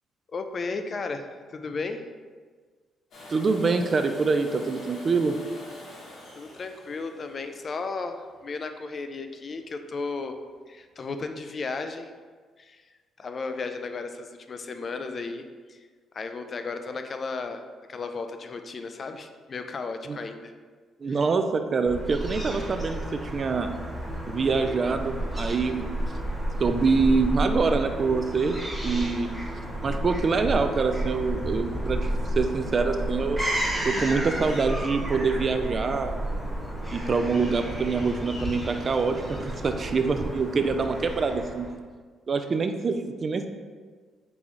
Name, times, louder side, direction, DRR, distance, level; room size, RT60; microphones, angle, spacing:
voice 1, 0.3-2.1 6.3-10.4 10.7-12.1 12.6-12.8 13.2-15.4 15.7-15.9 16.1-17.6 17.9-20.5 21.1-21.2, left 4 dB, 45° left, 7 dB, 0.3 m, -34 dB
Domestic sounds home sounds, 3.1-8.9 10.8-10.9, left 1 dB, 70° left, 1.1 m, -45 dB
voice 2, 3.3-5.4 20.1-20.2 21.0-23.7 24.3-25.9 26.6-28.6 28.8-29.3 29.8-33.4 33.8-36.1 36.9-39.4 39.6-41.7 42.3-43.5, right 4 dB, 40° right, 7 dB, 0.3 m, -25 dB
Fowl / Gull seagull, 21.9-41.7, right 1 dB, 5° right, 1.1 m, -32 dB
4.0 x 3.5 x 2.9 m, 1.5 s
cardioid pair, 90°, 0 cm